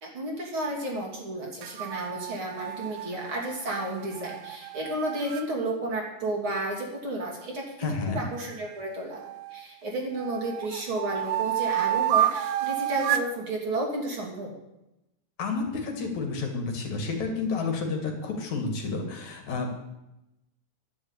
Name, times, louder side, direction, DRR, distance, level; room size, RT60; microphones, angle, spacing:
voice 1, 0.0-14.5, right 1 dB, 45° right, -1 dB, 3.7 m, -32 dB
sound 1, 1.6-5.5 8.4-9.7 10.2-13.4, right 12 dB, 80° right, 2.1 m, -30 dB
voice 2, 7.8-8.2 15.4-19.7, left 4 dB, 70° left, 3 dB, 3.6 m, -30 dB
11.5 x 11.0 x 8.2 m, 0.92 s
omnidirectional pair, 3.4 m